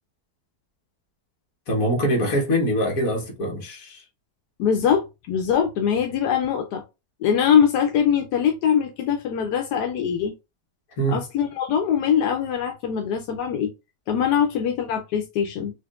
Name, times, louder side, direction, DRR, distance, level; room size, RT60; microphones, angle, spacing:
voice 1, 1.7-4.0 11.0-11.2, equal, 60° left, 1.6 m, -23 dB
voice 2, 4.6-6.8 7.2-10.3 11.1-13.7 14.1-15.7, left 8 dB, 85° left, 1.2 m, -22 dB
5.0 x 2.5 x 2.4 m
omnidirectional pair, 1.7 m